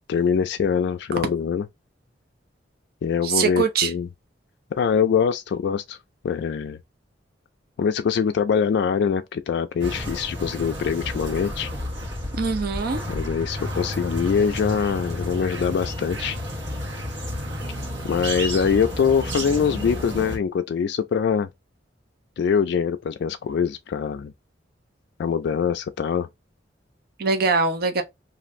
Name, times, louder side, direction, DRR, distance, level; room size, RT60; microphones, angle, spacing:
voice 1, 0.1-1.7 3.0-4.1 4.7-6.0 6.2-6.8 7.8-11.7 13.1-16.4 18.0-21.5 22.4-24.3 25.2-26.3, left 6 dB, 65° left, 0.3 m, -23 dB
voice 2, 3.2-3.9 12.3-13.0 27.2-28.0, right 5 dB, 55° right, 0.5 m, -22 dB
sound 1, 9.8-20.4, equal, 80° right, 1.1 m, -31 dB
2.5 x 2.5 x 3.0 m
head